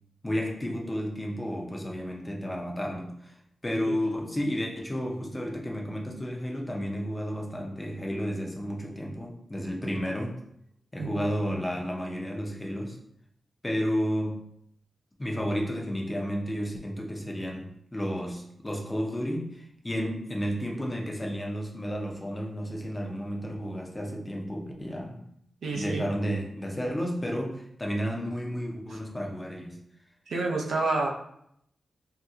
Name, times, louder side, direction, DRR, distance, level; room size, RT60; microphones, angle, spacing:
voice 1, 0.2-3.4 3.6-10.4 10.9-13.0 13.6-14.4 15.2-25.3 25.7-29.8, equal, 20° left, 0 dB, 0.6 m, -32 dB
voice 2, 25.6-26.1 30.3-31.1, right 3 dB, 85° right, 0 dB, 0.5 m, -29 dB
2.8 x 2.2 x 3.5 m, 0.73 s
wide cardioid pair, 95°, 0 cm